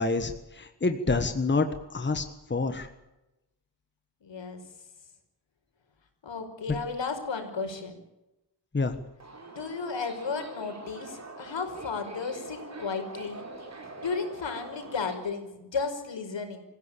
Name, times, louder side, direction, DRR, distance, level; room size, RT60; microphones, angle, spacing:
voice 1, 0.0-2.2 2.5-2.9 8.7-8.9, left 3 dB, 25° left, 8 dB, 1.4 m, -27 dB
voice 2, 4.2-4.6 6.2-8.0 9.5-13.5 14.0-16.6, left 4 dB, 75° left, 6 dB, 5.4 m, -34 dB
Subway metro underground, 9.2-15.1, right 3 dB, 35° right, 4.8 m, -44 dB
26.0 x 16.0 x 8.7 m, 0.94 s
wide cardioid pair, 165°, 44 cm